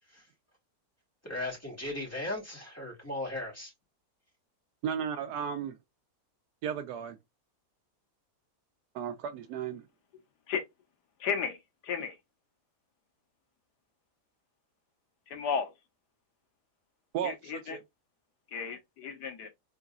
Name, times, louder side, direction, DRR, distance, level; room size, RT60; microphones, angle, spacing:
voice 1, 1.2-3.7, left 1 dB, 10° left, 2.5 m, -37 dB
voice 2, 4.8-5.8 6.6-7.2 8.9-9.8 17.1-17.8, right 8 dB, 80° right, 1.1 m, -34 dB
voice 3, 11.2-11.6 11.8-12.1 15.3-15.7 17.2-17.8 18.5-19.5, left 6 dB, 90° left, 1.5 m, -33 dB
3.9 x 3.8 x 2.3 m
omnidirectional pair, 1.7 m